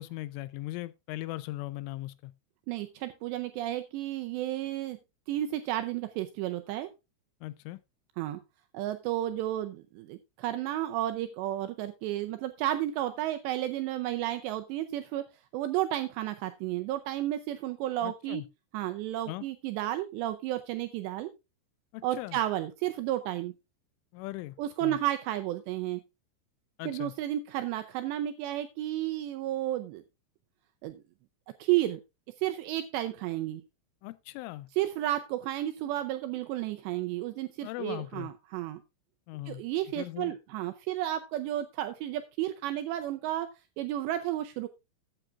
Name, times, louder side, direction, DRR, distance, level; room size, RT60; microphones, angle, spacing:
voice 1, 0.0-2.3 7.4-7.8 18.0-18.5 19.3-19.5 21.9-22.4 24.1-24.6 24.8-25.0 26.8-27.1 34.0-34.7 37.6-38.3 39.3-39.6 40.0-40.3, left 17 dB, 85° left, 3.1 m, -39 dB
voice 2, 2.7-5.0 5.3-6.9 8.2-8.4 8.7-15.3 15.5-18.4 18.7-21.3 22.0-23.5 24.6-26.0 26.9-30.0 30.8-31.0 31.6-32.0 32.4-33.6 34.8-38.8 39.5-43.5 43.8-44.7, right 13 dB, 85° right, 2.5 m, -32 dB
14.0 x 8.9 x 2.4 m
omnidirectional pair, 5.7 m